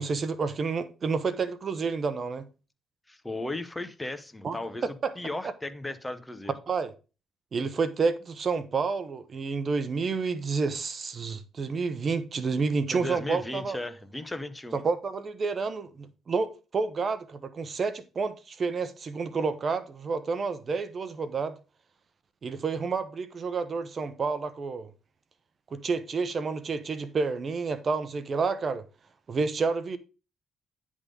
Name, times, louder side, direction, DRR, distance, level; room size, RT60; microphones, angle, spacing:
voice 1, 0.0-2.5 4.4-4.6 5.0-5.1 6.7-6.9 7.5-13.8 14.7-21.6 22.4-24.9 25.7-28.8 29.3-30.0, right 4 dB, 45° right, 0.8 m, -29 dB
voice 2, 3.1-6.5 12.9-14.8, left 2 dB, 15° left, 0.8 m, -36 dB
9.8 x 3.7 x 5.3 m
cardioid pair, 90°, 0 cm